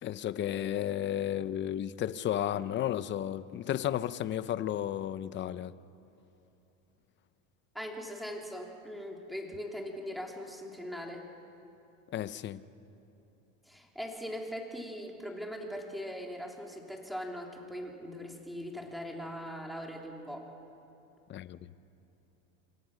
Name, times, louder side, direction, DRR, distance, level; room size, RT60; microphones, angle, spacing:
voice 1, 0.0-5.7 12.1-12.6 21.3-21.7, left 11 dB, 30° left, 0.7 m, -33 dB
voice 2, 7.7-11.2 13.6-20.5, equal, ahead, 3.2 m, -40 dB
28.0 x 25.5 x 6.4 m
supercardioid pair, 140°, 41 cm